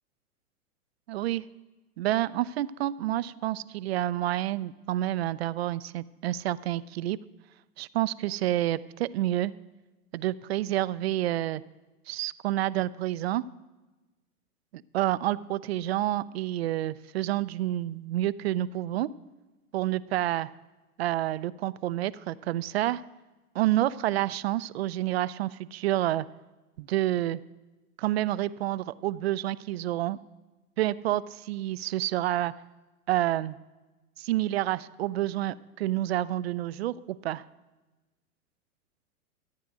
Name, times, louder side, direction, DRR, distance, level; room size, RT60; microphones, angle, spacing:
voice 1, 1.1-1.4 2.0-7.2 7.8-9.5 10.1-11.6 12.1-13.4 14.9-19.1 19.7-20.5 21.0-23.0 23.5-26.2 26.8-27.4 28.0-30.2 30.8-32.5 33.1-33.6 34.2-37.4, right 14 dB, 45° right, 17 dB, 0.4 m, -29 dB
13.5 x 9.1 x 6.1 m, 1.1 s
hypercardioid pair, 115°, 45 cm